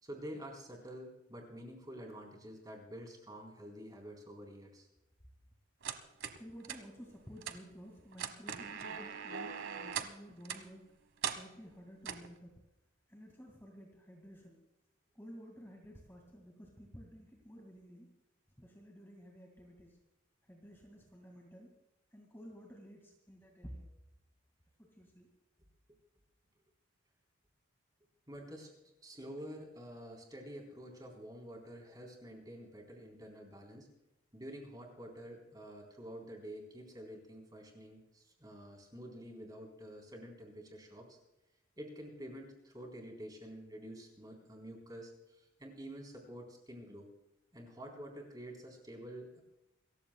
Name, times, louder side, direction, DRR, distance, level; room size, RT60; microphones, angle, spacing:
voice 1, 0.0-4.9 28.3-28.7 29.0-33.9 34.3-41.2 41.8-47.1 47.5-49.4, equal, 20° right, 2 dB, 3.9 m, -48 dB
sound 1, 5.8-6.4 6.6-6.8 7.4-7.6 8.1-10.1 10.5-10.6 11.2-11.4 12.1-12.3, right 7 dB, 75° right, 1.3 m, -40 dB
voice 2, 6.3-10.9 11.3-12.5 13.1-14.6 15.1-18.1 18.6-20.0 20.5-21.8 22.1-23.9 24.8-25.3, equal, 10° left, 1 dB, 2.1 m, -53 dB
28.0 x 15.0 x 2.3 m, 0.92 s
head